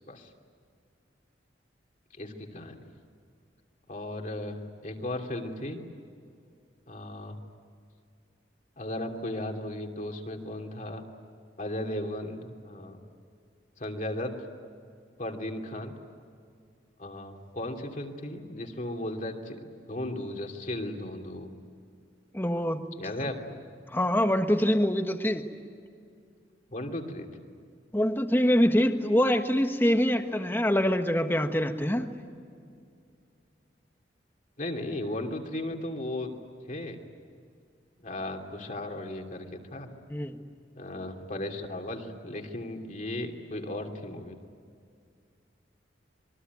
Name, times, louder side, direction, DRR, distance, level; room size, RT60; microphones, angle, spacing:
voice 1, 2.2-2.8 3.9-4.6 4.8-5.8 6.9-7.4 8.8-11.0 11.6-13.0 13.8-14.4 15.2-15.9 17.0-21.5 23.0-23.6 26.7-27.3 34.6-36.3 36.7-37.0 38.0-39.9 40.8-44.4, left 1 dB, 45° left, 2 dB, 2.8 m, -36 dB
voice 2, 22.3-22.8 23.9-25.5 27.9-32.1 40.1-40.4, equal, 10° left, 6 dB, 1.4 m, -24 dB
26.5 x 23.0 x 9.5 m, 2.3 s
head